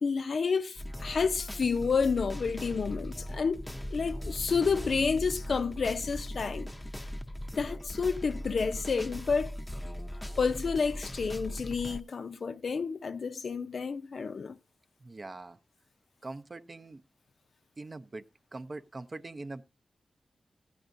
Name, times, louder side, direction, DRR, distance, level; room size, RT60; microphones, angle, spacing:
voice 1, 0.0-3.6 3.9-6.7 7.5-9.6 10.4-14.6, left 5 dB, 65° left, 0.5 m, -30 dB
sound 1, 0.8-12.0, equal, 10° left, 0.6 m, -39 dB
voice 2, 15.0-15.6 16.2-17.0 17.8-18.2 18.5-19.6, right 2 dB, 35° right, 0.5 m, -42 dB
14.0 x 9.1 x 2.6 m
wide cardioid pair, 90°, 0 cm